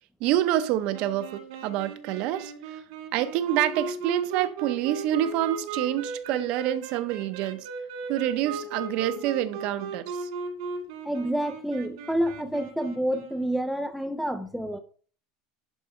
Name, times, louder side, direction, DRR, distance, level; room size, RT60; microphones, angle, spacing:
voice 1, 0.2-2.5 3.1-7.7 8.1-10.3, right 12 dB, 45° right, 0.7 m, -27 dB
sound 1, 0.9-13.5, right 4 dB, 90° right, 2.9 m, -37 dB
voice 2, 11.0-14.8, right 1 dB, ahead, 0.4 m, -28 dB
11.0 x 4.8 x 4.3 m
cardioid pair, 170°, 2 cm